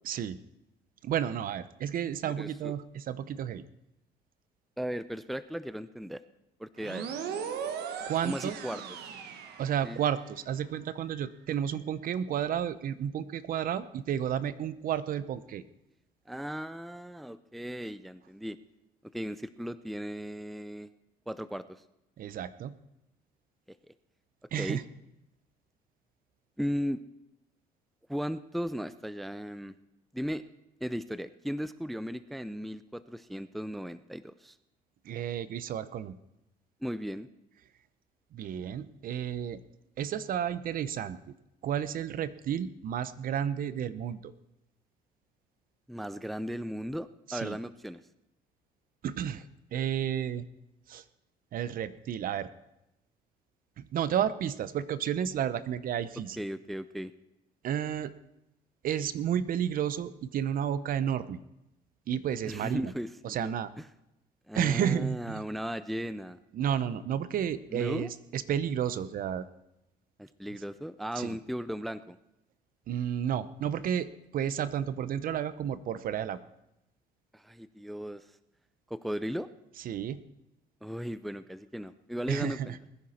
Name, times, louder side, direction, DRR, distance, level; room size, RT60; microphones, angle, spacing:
voice 1, 0.1-0.4 1.0-3.6 8.1-8.6 9.6-15.6 22.2-22.8 24.5-24.8 35.0-36.2 38.3-39.6 40.0-41.2 41.6-44.3 47.3-47.6 49.0-49.4 49.7-50.4 50.9-51.0 51.5-52.5 53.8-56.4 57.6-58.1 58.8-61.4 62.1-62.9 63.2-63.7 64.5-65.4 66.5-69.5 71.2-71.4 72.9-74.1 74.3-76.4 79.8-80.2 82.3-82.8, right 9 dB, 55° right, 15 dB, 0.8 m, -31 dB
voice 2, 2.4-2.7 4.8-6.2 6.6-7.1 8.2-8.8 9.8-10.0 16.3-18.6 19.1-20.9 21.3-21.6 24.6-24.8 26.6-27.0 28.1-29.7 30.1-30.4 30.8-34.6 36.8-37.3 45.9-48.0 56.4-57.1 62.5-63.9 64.5-66.4 67.7-68.1 70.2-72.2 77.3-78.2 78.9-79.5 80.8-82.8, equal, ahead, 14 dB, 0.4 m, -36 dB
sound 1, 6.8-10.3, right 7 dB, 75° right, 1.3 m, -38 dB
20.5 x 10.5 x 4.3 m, 0.87 s
cardioid pair, 110°, 17 cm